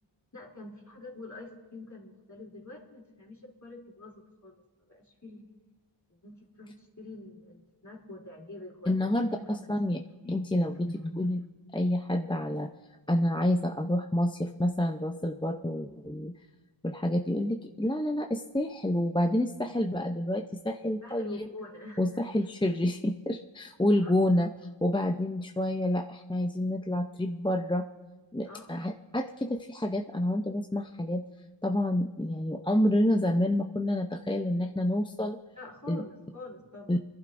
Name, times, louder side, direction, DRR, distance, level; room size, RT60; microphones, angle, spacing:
voice 1, 0.3-4.1 4.4-4.5 4.9-5.5 6.2-10.0 10.2-11.4 21.0-22.0 24.0-24.1 25.0-25.1 28.4-28.8 35.5-36.9, left 2 dB, 35° left, -2 dB, 3.1 m, -44 dB
voice 2, 8.9-9.4 9.7-10.0 10.3-10.9 11.2-11.4 11.7-12.7 13.1-16.3 16.8-21.5 22.0-24.5 24.8-27.8 28.3-31.2 31.6-35.4 35.9-36.0 36.9-37.0, left 1 dB, 10° left, 3 dB, 0.5 m, -28 dB
25.5 x 11.5 x 2.6 m, 1.2 s
wide cardioid pair, 40°, 50 cm